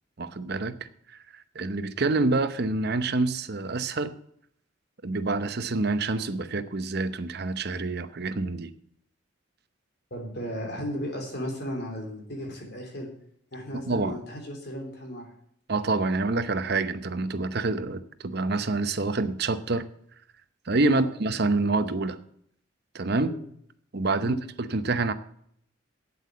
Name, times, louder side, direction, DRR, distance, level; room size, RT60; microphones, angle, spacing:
voice 1, 0.2-0.7 1.1-4.1 5.0-8.7 13.7-14.2 15.7-19.8 20.7-22.2 22.9-23.3 23.9-25.1, right 3 dB, 50° right, 11 dB, 0.8 m, -27 dB
voice 2, 10.1-13.1 13.5-15.3 20.9-21.0 23.1-23.4 24.2-24.4, equal, 50° left, 2 dB, 3.3 m, -35 dB
8.6 x 8.0 x 8.3 m, 0.68 s
head